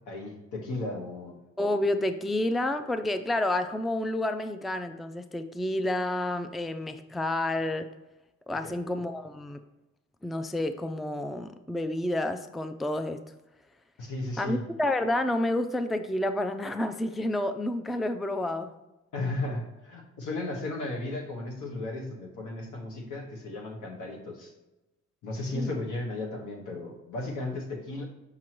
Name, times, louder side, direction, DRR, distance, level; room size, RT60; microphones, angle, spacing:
voice 1, 0.1-1.4 8.6-8.8 14.0-14.6 19.1-24.5 25.2-28.0, left 2 dB, 80° left, 1 dB, 1.5 m, -35 dB
voice 2, 1.6-7.9 8.5-9.6 10.2-13.2 14.4-18.7 25.5-25.7, left 1 dB, ahead, 9 dB, 0.3 m, -29 dB
6.1 x 5.8 x 3.0 m, 1.0 s
cardioid pair, 90°, 30 cm